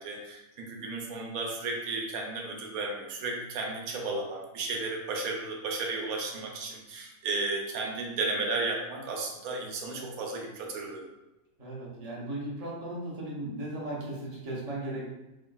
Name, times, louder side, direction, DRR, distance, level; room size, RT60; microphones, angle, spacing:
voice 1, 0.0-11.0, right 3 dB, 90° right, 1 dB, 1.0 m, -34 dB
voice 2, 11.6-15.1, right 1 dB, 35° right, -5 dB, 0.7 m, -36 dB
3.5 x 2.1 x 2.2 m, 0.98 s
omnidirectional pair, 1.5 m